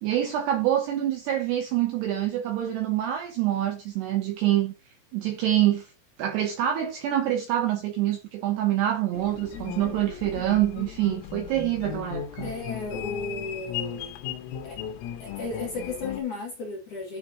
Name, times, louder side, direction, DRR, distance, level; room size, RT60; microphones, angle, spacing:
voice 1, 0.0-4.7 5.1-5.9 6.2-12.5, right 12 dB, 80° right, 2.5 m, -26 dB
sound 1, 9.1-16.2, left 9 dB, 85° left, 3.8 m, -36 dB
voice 2, 12.4-14.2 14.6-14.8 15.2-17.2, left 3 dB, 50° left, 2.7 m, -34 dB
11.5 x 4.6 x 2.9 m
omnidirectional pair, 5.8 m